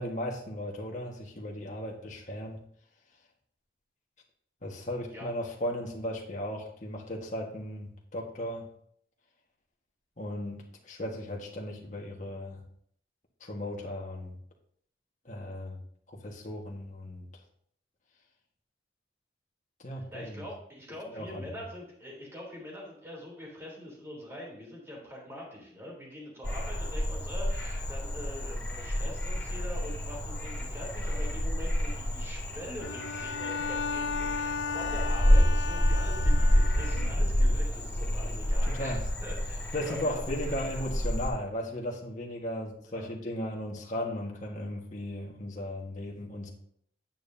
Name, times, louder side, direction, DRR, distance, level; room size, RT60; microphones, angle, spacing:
voice 1, 0.0-2.6 4.6-8.7 10.2-12.6 13.4-14.4 15.2-17.3 19.8-20.5 21.1-21.6 38.6-39.0 39.7-46.5, left 1 dB, 40° left, -1 dB, 1.5 m, -36 dB
voice 2, 20.1-40.3 42.9-43.1, equal, 15° right, -3 dB, 3.1 m, -43 dB
Frog, 26.4-41.3, equal, 5° left, 1.9 m, -28 dB
Bowed string instrument, 32.8-37.4, left 5 dB, 70° left, 0.5 m, -35 dB
9.3 x 9.0 x 2.7 m, 0.65 s
head